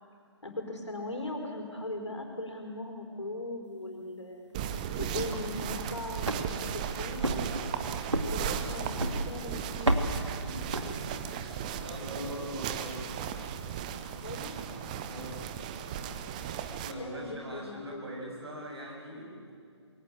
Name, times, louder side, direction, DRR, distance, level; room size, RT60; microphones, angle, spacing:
voice 1, 0.4-4.5 5.0-7.5 8.3-10.0 14.2-14.7 17.0-18.1, left 2 dB, 75° left, 3 dB, 4.7 m, -39 dB
sound 1, 4.5-16.9, right 8 dB, 15° right, 0.7 m, -36 dB
sound 2, 5.3-11.4, right 1 dB, 75° right, 2.2 m, -34 dB
voice 2, 10.5-13.4 15.0-15.5 16.8-19.6, equal, 60° right, -1 dB, 7.7 m, -42 dB
22.0 x 18.0 x 8.9 m, 2.1 s
figure-of-eight pair, 145°, 15 cm